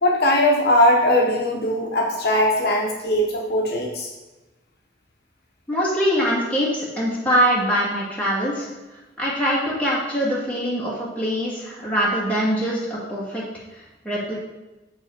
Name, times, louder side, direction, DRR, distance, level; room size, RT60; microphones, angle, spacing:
voice 1, 0.0-4.1, left 1 dB, 55° left, -1 dB, 0.8 m, -20 dB
voice 2, 5.7-8.7 9.2-13.4 14.0-14.3, equal, 10° left, -7 dB, 1.8 m, -23 dB
8.0 x 4.0 x 4.3 m, 1.1 s
head